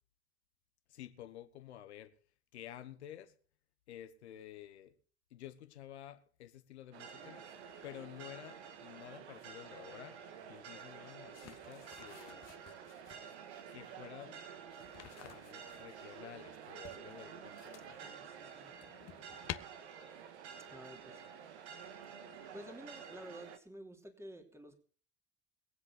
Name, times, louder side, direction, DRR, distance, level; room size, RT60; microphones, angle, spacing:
voice 1, 0.9-2.1 2.5-3.3 3.9-4.9 5.3-7.5 7.8-10.2 10.5-12.4 13.7-14.4 15.2-18.0, left 12 dB, 85° left, 1.3 m, -51 dB
sound 1, 6.9-23.6, right 7 dB, 80° right, 1.7 m, -50 dB
sound 2, 11.3-13.3 14.7-16.0 16.8-18.1 18.5-19.6, left 12 dB, 50° left, 1.3 m, -50 dB
voice 2, 17.9-18.7 20.7-21.2 22.5-24.8, equal, 10° right, 3.0 m, -51 dB
21.5 x 7.9 x 6.1 m
hypercardioid pair, 65°, 33 cm